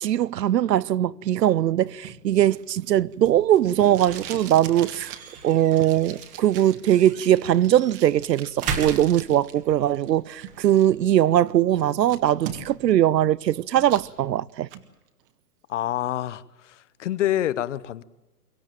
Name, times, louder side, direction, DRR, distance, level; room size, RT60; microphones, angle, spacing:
voice 1, 0.0-5.1 5.4-14.7, right 12 dB, 85° right, 0.8 m, -21 dB
sound 1, 1.8-14.5, right 5 dB, 15° right, 1.6 m, -40 dB
Packing tape duct tape, 2.0-9.5 9.8-10.8 11.3-11.4 11.7-12.9 13.3-14.1 14.5-14.8, right 10 dB, 35° right, 1.8 m, -41 dB
voice 2, 15.7-18.0, left 12 dB, 50° left, 0.9 m, -27 dB
24.0 x 16.0 x 9.1 m
hypercardioid pair, 155°, 48 cm